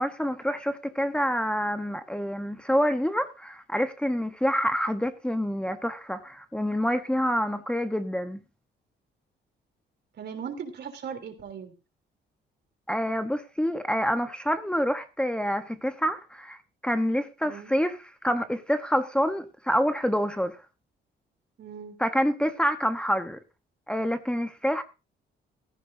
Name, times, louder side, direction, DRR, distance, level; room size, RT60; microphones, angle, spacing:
voice 1, 0.0-8.4 12.9-20.6 22.0-23.4 23.9-24.8, equal, 5° left, 1.0 m, -27 dB
voice 2, 10.2-11.7 17.4-17.7 21.6-21.9, right 7 dB, 60° right, 3.3 m, -38 dB
16.0 x 14.5 x 2.7 m
cardioid pair, 90°, 20 cm